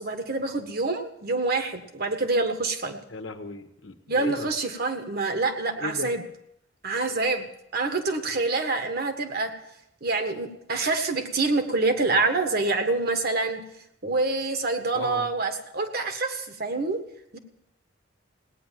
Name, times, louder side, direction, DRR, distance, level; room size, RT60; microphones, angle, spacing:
voice 1, 0.0-3.0 4.1-6.2 6.8-7.5 7.7-9.5 10.0-13.6 14.0-17.0 17.3-17.4, right 3 dB, 55° right, 6 dB, 1.6 m, -26 dB
voice 2, 3.1-4.5 5.8-6.1 8.3-8.4 14.9-15.3, left 3 dB, 75° left, 6 dB, 1.4 m, -36 dB
18.0 x 9.6 x 7.5 m, 0.79 s
head